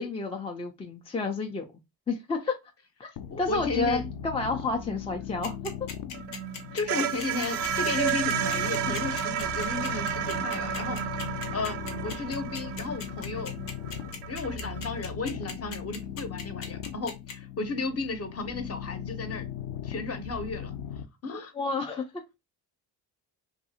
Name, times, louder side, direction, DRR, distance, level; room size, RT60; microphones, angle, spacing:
voice 1, 0.0-1.6 2.1-2.5 3.0-5.6 9.7-9.9 21.5-22.2, left 3 dB, 15° left, 0.3 m, -30 dB
sound 1, 3.2-21.0, left 8 dB, 60° left, 0.6 m, -39 dB
voice 2, 3.3-4.0 6.7-11.0 11.5-13.5 14.3-19.5 19.8-20.7 21.2-21.5, left 3 dB, 30° left, 0.8 m, -34 dB
sound 2, 5.4-17.3, left 5 dB, 85° left, 1.0 m, -39 dB
sound 3, 6.1-15.0, right 10 dB, 85° right, 0.5 m, -32 dB
2.6 x 2.4 x 2.7 m
supercardioid pair, 70°, 48 cm